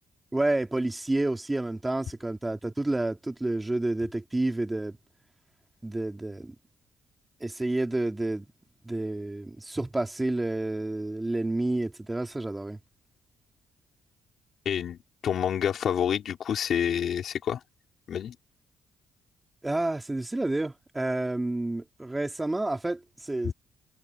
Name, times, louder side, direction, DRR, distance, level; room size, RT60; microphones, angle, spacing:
voice 1, 0.3-5.0 5.8-6.5 7.4-8.4 8.8-12.8 19.6-23.5, right 2 dB, 15° right, 3.3 m, -29 dB
voice 2, 14.7-17.6 18.1-18.4 23.4-23.5, left 9 dB, 65° left, 3.7 m, -28 dB
cardioid pair, 90°, 0 cm